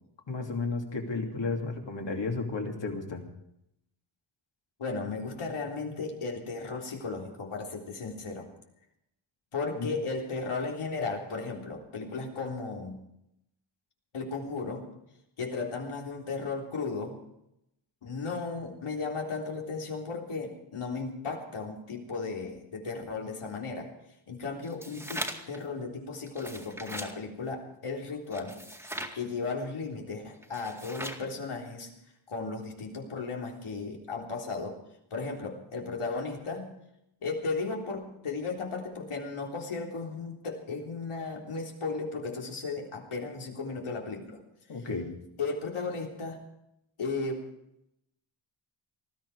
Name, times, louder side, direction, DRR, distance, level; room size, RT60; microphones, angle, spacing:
voice 1, 0.3-3.2 9.8-9.9 44.7-45.1, left 3 dB, 60° left, 2 dB, 3.0 m, -33 dB
voice 2, 4.8-8.5 9.5-13.0 14.1-14.9 15.4-17.2 18.0-23.9 24.3-28.6 29.1-31.9 32.3-34.8 35.1-36.7 37.2-44.4 45.4-46.4 47.0-47.4, left 4 dB, 85° left, 0 dB, 3.7 m, -35 dB
sound 1, 24.6-25.6 26.3-27.1 28.3-29.2 30.4-31.3, equal, 5° right, 2.2 m, -39 dB
19.5 x 14.0 x 4.9 m, 0.80 s
wide cardioid pair, 110°, 49 cm